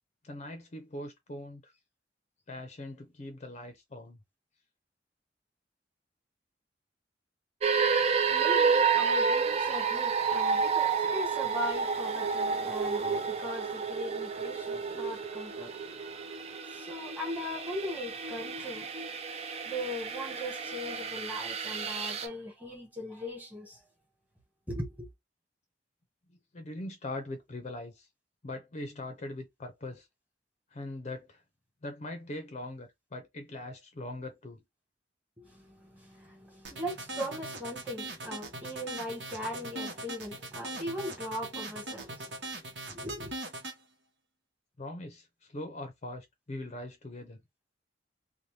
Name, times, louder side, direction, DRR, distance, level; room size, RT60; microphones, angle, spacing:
voice 1, 0.2-1.7 2.5-4.2 26.5-28.1 28.4-30.1 30.7-31.4 31.8-34.6 44.8-47.4, left 1 dB, 40° left, 0.5 m, -41 dB
sound 1, 7.6-22.3, right 5 dB, 35° right, 0.4 m, -30 dB
voice 2, 7.9-16.3 16.7-19.2 19.6-23.8 24.7-25.1 35.4-42.6 42.9-43.4, left 1 dB, 10° right, 1.3 m, -39 dB
sound 2, 36.6-43.8, right 2 dB, 75° right, 1.0 m, -40 dB
2.7 x 2.2 x 3.2 m
head